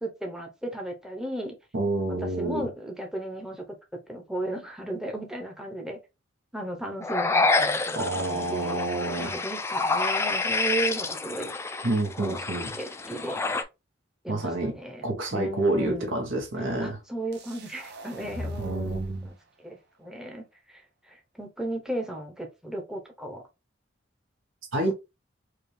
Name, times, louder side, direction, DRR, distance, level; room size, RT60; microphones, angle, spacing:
voice 1, 0.0-1.5 2.1-3.8 4.1-6.0 6.5-11.5 12.2-12.4 12.8-13.4 14.2-16.1 16.8-23.4, right 1 dB, 5° right, 0.7 m, -35 dB
voice 2, 1.7-2.7 8.0-9.3 11.8-12.7 14.3-14.7 15.0-17.0 18.6-19.3 24.7-24.9, right 2 dB, 80° right, 1.2 m, -28 dB
sound 1, 7.0-13.6, left 3 dB, 15° left, 0.3 m, -28 dB
sound 2, 17.3-19.3, equal, 60° right, 0.9 m, -39 dB
4.7 x 2.3 x 3.2 m
head